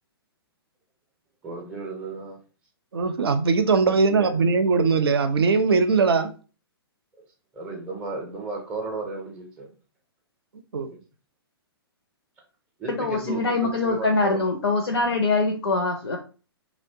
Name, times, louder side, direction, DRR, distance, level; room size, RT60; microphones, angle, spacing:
voice 1, 1.4-2.4 3.8-4.4 7.5-9.7 10.9-11.0 12.8-14.4, right 3 dB, 5° right, 0.5 m, -34 dB
voice 2, 2.9-6.3 10.7-10.9, right 4 dB, 70° right, 0.4 m, -20 dB
voice 3, 13.0-16.2, left 3 dB, 75° left, 0.5 m, -23 dB
2.8 x 2.1 x 2.6 m
figure-of-eight pair, 120°, 13 cm